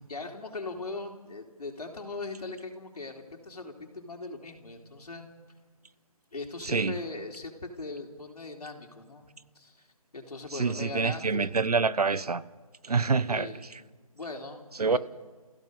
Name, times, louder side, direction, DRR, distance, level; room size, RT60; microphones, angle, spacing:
voice 1, 0.1-5.3 6.3-9.3 9.6-9.9 10.1-11.6 13.3-13.6 14.1-15.0, left 3 dB, 90° left, 2 dB, 4.0 m, -40 dB
voice 2, 10.5-12.4 12.8-13.8 14.8-15.0, right 4 dB, 90° right, 17 dB, 1.1 m, -26 dB
29.0 x 16.0 x 5.5 m, 1.4 s
hypercardioid pair, 180°, 19 cm